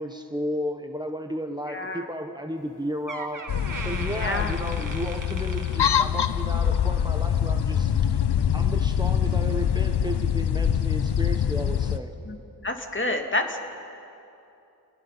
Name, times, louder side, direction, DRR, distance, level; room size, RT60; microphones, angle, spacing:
voice 1, 0.0-3.4 3.8-7.9 8.5-12.1, equal, 10° right, 5 dB, 1.3 m, -33 dB
voice 2, 1.7-2.1 4.1-4.5 12.3-12.4 12.6-13.7, left 2 dB, 30° left, 4 dB, 2.3 m, -28 dB
Door, 2.6-2.7 3.1-6.6 6.9-7.2 7.9-8.0, right 3 dB, 50° right, 2.0 m, -39 dB
sound 1, 3.5-12.0, left 9 dB, 80° left, 0.8 m, -24 dB
29.0 x 19.0 x 5.8 m, 2.7 s
cardioid pair, 45°, 40 cm